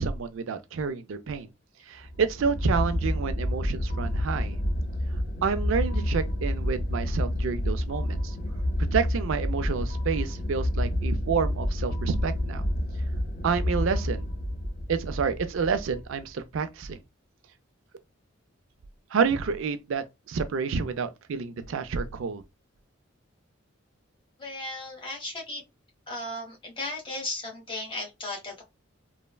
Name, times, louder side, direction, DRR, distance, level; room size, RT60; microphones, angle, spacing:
voice 1, 0.0-1.5 1.9-4.5 5.4-8.3 8.9-12.7 13.4-14.3 14.9-17.0 19.1-22.4, right 5 dB, 75° right, 0.4 m, -29 dB
sound 1, 2.0-16.2, left 1 dB, 45° left, 0.4 m, -29 dB
voice 2, 24.4-25.6 26.1-28.6, left 2 dB, 25° left, 1.0 m, -35 dB
3.2 x 2.1 x 2.2 m
head